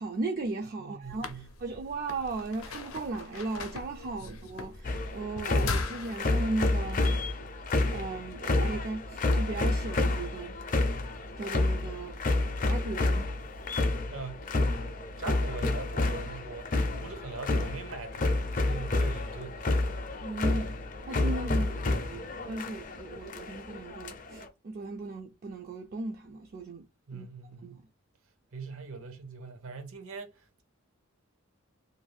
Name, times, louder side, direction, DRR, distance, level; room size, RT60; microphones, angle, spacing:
voice 1, 0.0-7.1 7.9-10.6 11.4-12.2 12.6-13.3 20.2-26.9 27.1-27.3 27.6-27.8, right 3 dB, 45° right, 0.3 m, -37 dB
voice 2, 0.8-1.5 4.2-4.5 14.1-14.5 15.2-20.2 27.1-27.8 28.5-30.6, right 4 dB, 75° right, 0.7 m, -42 dB
sound 1, 1.0-6.2, left 4 dB, 80° left, 0.6 m, -39 dB
sound 2, 4.8-24.5, left 2 dB, 40° left, 0.5 m, -30 dB
2.6 x 2.3 x 3.2 m
head